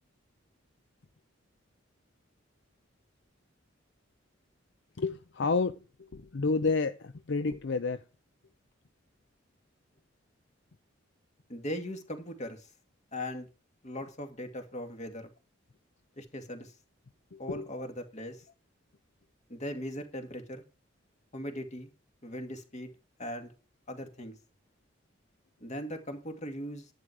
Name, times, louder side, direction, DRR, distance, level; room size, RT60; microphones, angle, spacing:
voice 1, 5.0-5.8 6.1-8.0 17.3-17.7, left 4 dB, 65° left, 11 dB, 0.6 m, -30 dB
voice 2, 11.5-12.7 13.1-13.5 13.8-15.3 16.2-16.7 17.4-18.4 19.5-20.6 21.3-21.9 22.2-22.9 23.2-23.5 23.9-24.4 25.6-26.9, equal, 40° left, 5 dB, 2.3 m, -39 dB
11.5 x 9.5 x 4.8 m, 0.32 s
head